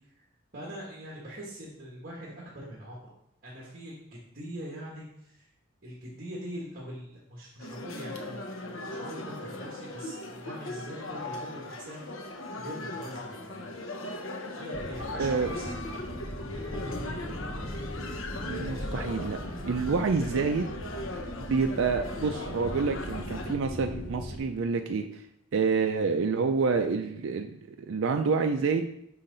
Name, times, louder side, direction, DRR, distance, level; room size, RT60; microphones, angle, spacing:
voice 1, 0.5-3.1 3.4-5.4 5.8-12.0 12.5-13.6 14.5-16.0 16.5-17.5, equal, 50° right, -3 dB, 1.3 m, -43 dB
sound 1, 7.6-23.6, left 2 dB, 90° left, 0.8 m, -39 dB
sound 2, 14.7-24.4, equal, 45° left, 1.2 m, -38 dB
voice 2, 15.2-15.5 18.5-20.7 21.5-25.2 25.5-28.9, right 4 dB, 75° right, 5 dB, 0.4 m, -28 dB
5.7 x 5.5 x 3.9 m, 0.77 s
head